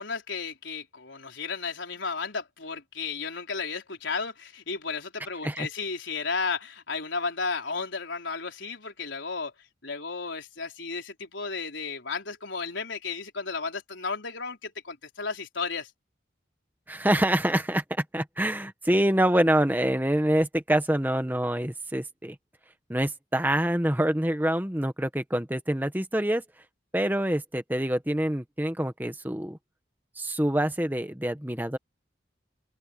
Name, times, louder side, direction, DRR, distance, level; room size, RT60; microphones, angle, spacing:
voice 1, 0.0-9.5 9.8-15.9, left 4 dB, 85° left, 4.3 m, -33 dB
voice 2, 16.9-22.3 22.9-26.4 26.9-29.6 30.2-31.8, right 1 dB, 10° right, 1.3 m, -26 dB
head